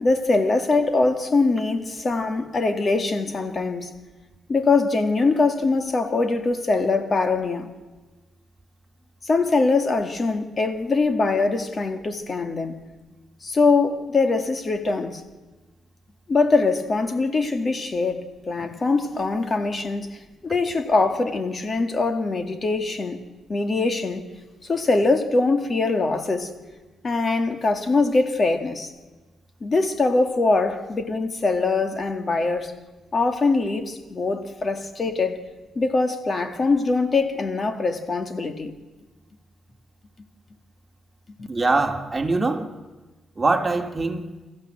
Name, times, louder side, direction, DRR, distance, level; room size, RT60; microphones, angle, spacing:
voice 1, 0.0-3.9 4.5-7.7 9.2-12.8 13.4-15.2 16.3-23.2 23.5-24.3 24.6-26.5 27.0-28.9 29.6-32.7 33.1-35.5 35.8-38.7, left 3 dB, 40° left, 2.1 m, -22 dB
voice 2, 41.5-42.7 43.4-44.3, right 3 dB, 25° right, 2.3 m, -23 dB
30.0 x 14.5 x 7.7 m
cardioid pair, 90°, 0 cm